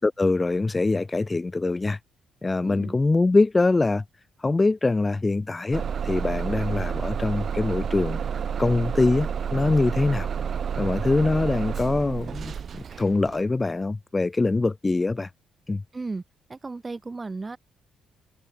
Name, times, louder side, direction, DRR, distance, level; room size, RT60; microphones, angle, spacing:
voice 1, 0.0-2.0 2.4-4.0 4.4-8.2 8.6-10.3 10.8-15.3 15.7-15.8, left 3 dB, 20° left, 0.4 m, -23 dB
voice 2, 2.6-3.0 15.9-16.2 16.5-17.6, right 3 dB, 25° right, 1.1 m, -34 dB
Bus / Engine starting, 5.7-13.5, right 7 dB, 50° right, 0.5 m, -30 dB
cardioid pair, 90°, 0 cm